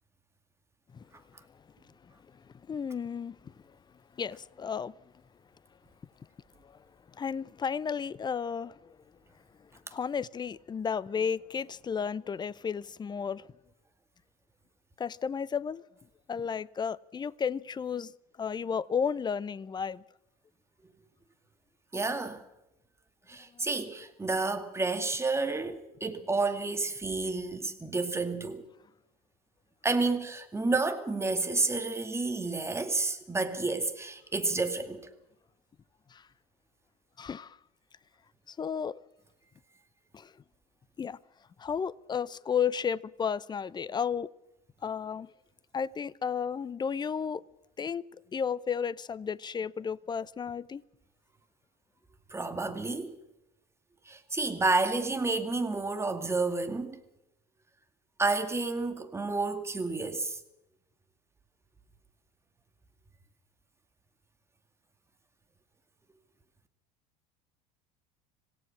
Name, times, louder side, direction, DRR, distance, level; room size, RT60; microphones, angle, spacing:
voice 1, 1.5-3.7 4.1-4.9 6.6-6.9 7.1-9.0 9.6-13.5 15.0-15.8 16.3-18.1 18.4-20.0 23.5-23.7 36.1-36.3 37.2-37.6 38.5-39.0 40.1-40.3 41.0-41.2 41.6-44.3 44.8-45.3 45.7-47.4 47.8-48.0 48.3-50.8, left 7 dB, 20° left, 0.7 m, -33 dB
voice 2, 21.9-22.4 23.3-28.6 29.8-35.0 52.3-53.2 54.1-57.0 58.2-60.4, right 3 dB, 15° right, 2.3 m, -30 dB
26.5 x 17.0 x 6.1 m
figure-of-eight pair, 75°, 20 cm